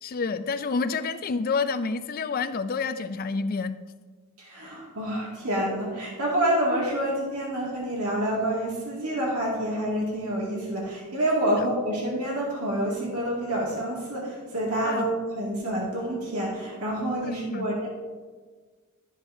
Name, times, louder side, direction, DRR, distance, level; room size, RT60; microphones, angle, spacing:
voice 1, 0.0-3.8 14.8-15.1 17.2-17.7, left 4 dB, 40° left, 11 dB, 0.4 m, -28 dB
voice 2, 4.4-17.9, right 1 dB, 85° right, -4 dB, 2.1 m, -28 dB
12.5 x 7.3 x 2.7 m, 1.4 s
head